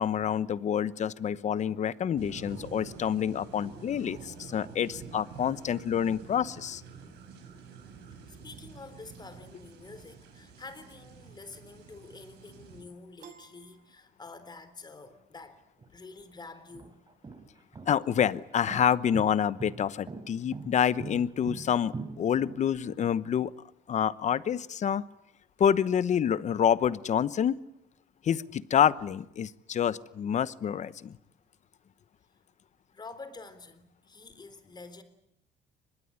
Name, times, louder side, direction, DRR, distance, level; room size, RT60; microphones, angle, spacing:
voice 1, 0.0-6.8 17.9-23.5 23.9-25.0 25.6-27.6 28.2-31.1, left 8 dB, 45° left, 17 dB, 1.0 m, -27 dB
sound 1, 2.2-12.8, right 5 dB, 80° right, 6.7 m, -48 dB
voice 2, 8.3-15.6 15.9-17.0 32.9-35.0, left 3 dB, 25° left, 12 dB, 3.6 m, -48 dB
Piano, 13.2-14.7, right 8 dB, 50° right, 2.4 m, -55 dB
sound 2, 15.8-15.9 16.6-23.1, right 4 dB, 25° right, 3.7 m, -41 dB
24.5 x 21.0 x 9.7 m, 0.81 s
cardioid pair, 110°, 17 cm